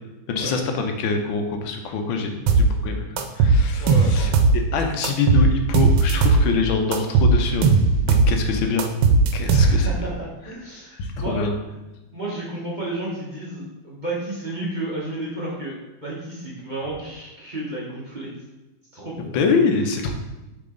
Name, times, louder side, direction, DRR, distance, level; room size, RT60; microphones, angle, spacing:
voice 1, 0.3-7.7 8.0-8.9 9.3-10.1 11.0-11.5 19.2-20.1, left 4 dB, 90° left, 4 dB, 1.5 m, -25 dB
sound 1, 2.5-2.7 3.2-4.6 5.0-6.5 6.9-8.3 8.8-10.0, right 3 dB, 90° right, 1.4 m, -17 dB
voice 2, 3.8-4.4 9.5-11.4 11.7-11.8 12.1-18.3 18.9-19.3 19.7-20.0, right 2 dB, 30° right, -6 dB, 0.9 m, -32 dB
6.8 x 3.9 x 3.8 m, 1.0 s
omnidirectional pair, 2.1 m